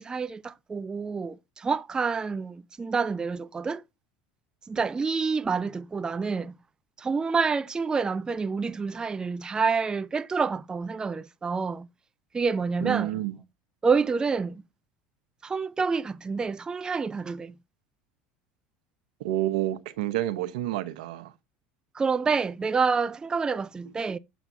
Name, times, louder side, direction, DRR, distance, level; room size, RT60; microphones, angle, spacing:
voice 1, 0.0-3.8 4.7-6.6 7.0-11.9 12.3-13.2 13.8-14.6 15.4-17.5 21.9-24.2, right 5 dB, 20° right, 0.4 m, -28 dB
voice 2, 12.8-13.4 19.2-21.3, right 14 dB, 80° right, 0.9 m, -29 dB
7.1 x 7.1 x 2.7 m
supercardioid pair, 90°, 4 cm